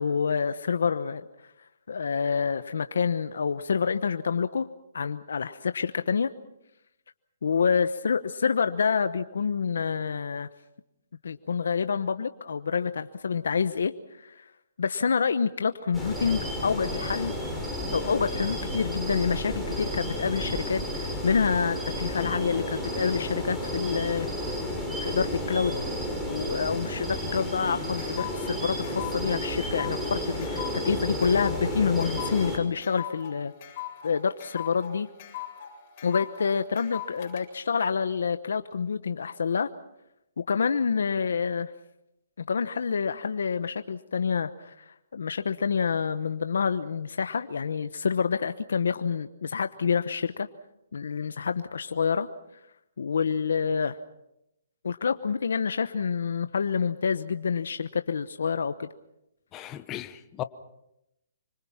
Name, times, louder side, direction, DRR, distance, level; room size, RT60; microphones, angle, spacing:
voice 1, 0.0-4.7 4.9-6.3 7.4-10.5 11.2-14.5 14.8-17.4 17.9-24.6 25.0-25.8 26.3-33.5 34.0-35.1 36.0-39.7 40.4-41.7 42.4-50.5 50.9-52.3 53.0-54.0 54.8-58.9, left 6 dB, 80° left, 10 dB, 1.0 m, -27 dB
sound 1, 15.9-32.6, equal, 5° right, 5.6 m, -32 dB
sound 2, 27.4-37.4, left 12 dB, 40° left, 7.7 m, -40 dB
voice 2, 59.5-60.4, left 13 dB, 20° left, 10 dB, 1.1 m, -36 dB
26.5 x 24.5 x 5.8 m, 0.85 s
hypercardioid pair, 155°, 0 cm